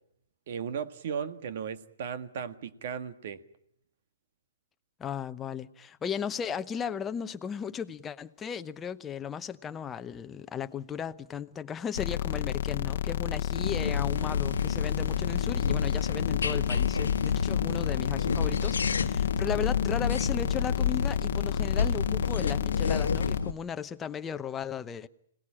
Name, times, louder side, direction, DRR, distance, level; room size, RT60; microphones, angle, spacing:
voice 1, 0.5-3.4, right 7 dB, 55° right, 1.7 m, -36 dB
voice 2, 5.0-25.1, left 7 dB, 15° left, 0.9 m, -36 dB
sound 1, 11.9-23.4, left 10 dB, 65° left, 1.0 m, -31 dB
sound 2, 13.5-23.5, left 5 dB, 90° left, 1.3 m, -30 dB
25.5 x 18.5 x 8.7 m
hypercardioid pair, 135°, 0 cm